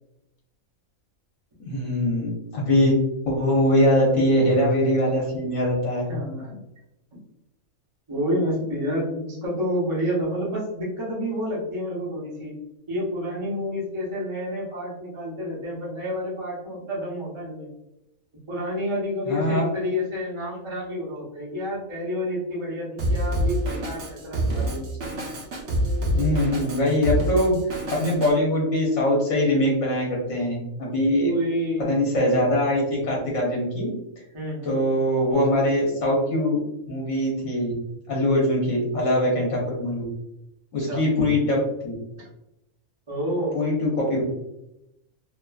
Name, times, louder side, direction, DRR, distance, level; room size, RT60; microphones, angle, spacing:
voice 1, 1.6-2.9 3.2-6.1 19.3-19.6 26.1-27.6 27.9-31.3 31.9-33.9 34.6-36.6 36.9-37.7 38.1-40.0 40.7-41.9 43.5-44.2, left 1 dB, 65° left, -3 dB, 1.1 m, -22 dB
voice 2, 6.1-6.6 8.1-12.5 12.9-17.7 18.5-24.9 31.2-31.9 34.3-34.9 40.8-41.0 42.2-42.3 43.1-43.6, equal, 30° right, -5 dB, 0.6 m, -29 dB
Drum kit, 23.0-28.3, equal, 60° right, 0.9 m, -26 dB
2.8 x 2.4 x 2.3 m, 0.86 s
omnidirectional pair, 1.5 m